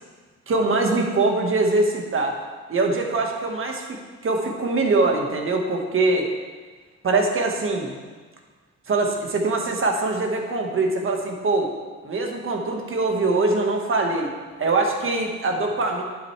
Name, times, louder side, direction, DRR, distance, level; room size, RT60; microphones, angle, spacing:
voice 1, 0.5-2.4 2.7-3.8 4.2-6.3 7.0-8.0 8.9-11.7 12.0-14.3 14.6-16.0, right 3 dB, 45° right, 2 dB, 1.5 m, -23 dB
10.5 x 7.7 x 3.3 m, 1.4 s
cardioid pair, 90°, 30 cm